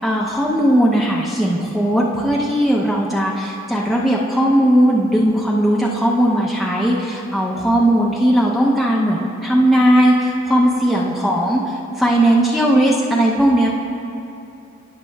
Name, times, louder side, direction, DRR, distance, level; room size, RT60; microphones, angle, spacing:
voice 1, 0.0-11.6 12.0-13.7, right 1 dB, ahead, -4 dB, 0.6 m, -17 dB
16.0 x 6.6 x 2.3 m, 2.7 s
head